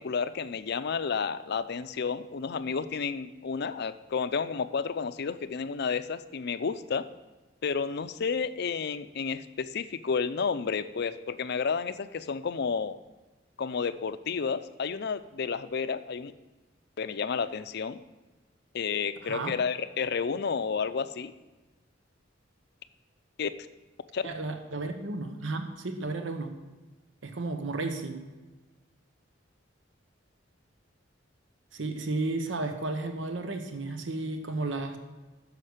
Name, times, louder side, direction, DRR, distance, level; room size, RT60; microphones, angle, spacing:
voice 1, 0.0-7.1 7.6-13.0 13.6-16.3 17.0-18.0 18.7-21.3 23.4-23.5 24.1-24.2, left 5 dB, 60° left, 12 dB, 0.5 m, -31 dB
voice 2, 19.2-19.6 24.2-26.5 27.2-28.2 31.7-35.0, right 2 dB, 85° right, 6 dB, 1.0 m, -33 dB
10.0 x 6.6 x 6.6 m, 1.2 s
head